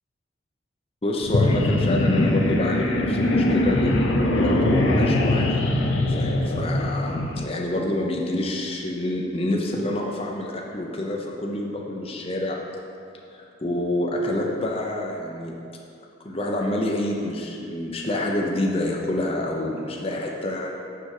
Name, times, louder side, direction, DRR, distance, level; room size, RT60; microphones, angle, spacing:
voice 1, 1.0-5.6 6.1-12.6 13.3-15.6 16.2-20.7, left 1 dB, 30° left, -1 dB, 0.6 m, -27 dB
sound 1, 1.2-7.4, left 1 dB, 75° left, 0.7 m, -22 dB
6.8 x 4.9 x 4.8 m, 2.5 s
head